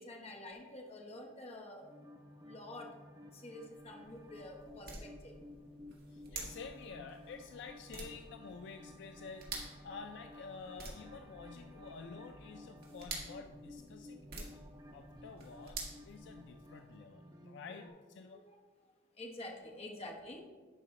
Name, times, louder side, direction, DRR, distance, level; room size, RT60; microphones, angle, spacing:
voice 1, 0.0-2.0 2.4-5.4 18.3-18.6 19.1-20.4, left 1 dB, 30° left, 2 dB, 1.0 m, -48 dB
sound 1, 1.8-17.9, left 1 dB, 20° right, 0.7 m, -55 dB
sound 2, 3.7-16.8, right 3 dB, 50° right, 1.8 m, -50 dB
voice 2, 6.1-14.6 14.9-18.4, left 5 dB, 60° left, 7 dB, 0.3 m, -50 dB
11.5 x 4.9 x 3.1 m, 1.4 s
head